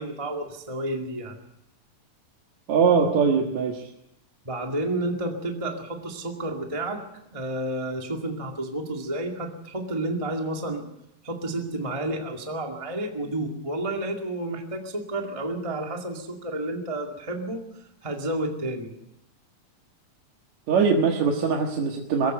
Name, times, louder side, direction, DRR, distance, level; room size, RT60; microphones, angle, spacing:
voice 1, 0.0-1.4 4.4-7.0 7.3-10.9 11.2-18.9, right 1 dB, 10° right, 2 dB, 1.8 m, -31 dB
voice 2, 2.7-3.9 20.7-22.3, right 5 dB, 70° right, 1 dB, 2.9 m, -22 dB
22.5 x 15.5 x 8.0 m, 0.83 s
omnidirectional pair, 3.4 m